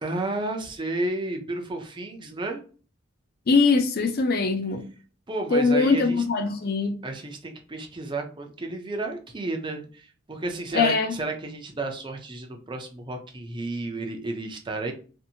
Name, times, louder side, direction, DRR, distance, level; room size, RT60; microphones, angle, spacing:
voice 1, 0.0-2.6 5.3-6.2 7.0-14.9, right 2 dB, 25° right, 0.5 m, -32 dB
voice 2, 3.5-4.9 5.5-7.0 10.7-11.1, left 4 dB, 45° left, 0.5 m, -22 dB
2.6 x 2.5 x 2.7 m
head